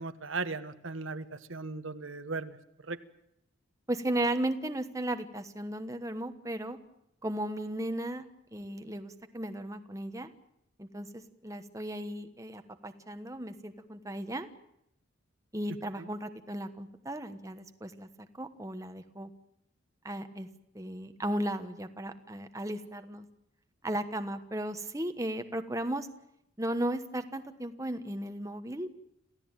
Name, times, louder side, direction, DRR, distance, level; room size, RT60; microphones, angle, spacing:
voice 1, 0.0-2.6 2.9-3.0 16.0-16.1, right 3 dB, 65° right, 10 dB, 1.4 m, -37 dB
voice 2, 3.9-6.8 7.2-8.2 8.5-10.3 10.8-14.5 15.5-18.1 18.4-19.3 20.0-20.5 20.7-23.3 23.8-26.1 26.6-28.9, right 1 dB, 15° right, 7 dB, 1.2 m, -35 dB
27.5 x 16.0 x 9.0 m, 0.80 s
head